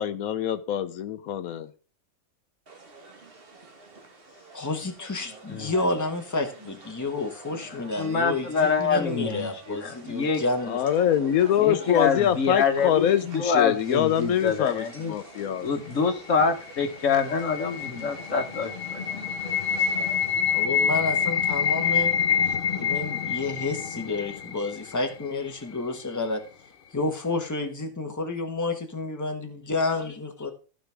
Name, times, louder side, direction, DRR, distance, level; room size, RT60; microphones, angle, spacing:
voice 1, 0.0-1.7 10.7-15.7, left 10 dB, 85° left, 11 dB, 1.2 m, -24 dB
sound 1, 2.7-20.7, right 3 dB, 45° right, 1.6 m, -47 dB
voice 2, 4.5-10.8 20.5-22.1 22.4-26.4 26.9-30.5, left 3 dB, 15° left, 5 dB, 1.2 m, -30 dB
voice 3, 5.2-5.7 7.0-7.1 7.7-10.4 11.6-15.1 15.6-19.3, left 5 dB, 65° left, 7 dB, 1.5 m, -26 dB
sound 2, 16.4-25.4, left 7 dB, 50° left, 0.7 m, -27 dB
15.0 x 5.1 x 3.5 m, 0.37 s
omnidirectional pair, 1.5 m